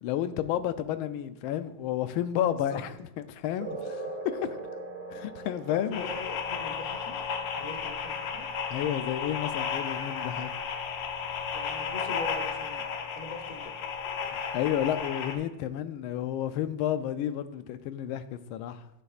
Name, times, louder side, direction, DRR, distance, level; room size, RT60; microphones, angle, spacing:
voice 1, 0.0-3.8 4.3-4.5 5.1-6.1 8.7-10.5 14.2-18.9, left 11 dB, 85° left, 1.4 m, -31 dB
sound 1, 3.6-10.6, right 2 dB, 50° right, 1.6 m, -42 dB
voice 2, 3.8-4.2 5.7-7.2 7.5-8.4 11.5-12.9 13.2-13.8, left 2 dB, 50° left, 0.4 m, -42 dB
sound 2, 5.9-15.4, left 6 dB, 70° left, 1.4 m, -34 dB
10.0 x 9.4 x 2.4 m
omnidirectional pair, 2.2 m